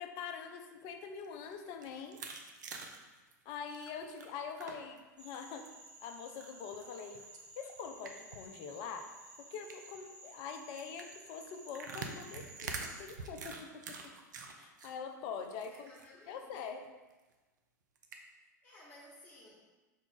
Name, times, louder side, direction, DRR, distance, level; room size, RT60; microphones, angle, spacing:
voice 1, 0.0-2.2 3.5-5.7 6.0-7.2 7.6-9.1 9.4-14.1 14.5-15.9 16.3-16.9, left 6 dB, 50° left, 6 dB, 0.5 m, -44 dB
sound 1, 1.1-5.0 5.3-5.9 6.4-8.5 8.8-8.9 9.1-9.3 9.6-10.0 10.8-14.9 15.3-16.1 16.4-16.5 16.8-16.9 18.0-18.2, right 4 dB, 75° right, 0.5 m, -46 dB
sound 2, 5.2-13.0, right 2 dB, 10° right, 1.3 m, -55 dB
voice 2, 15.7-16.7 18.6-19.6, left 1 dB, 20° left, -7 dB, 1.1 m, -57 dB
4.5 x 2.3 x 3.8 m, 1.2 s
figure-of-eight pair, 90°, 10 cm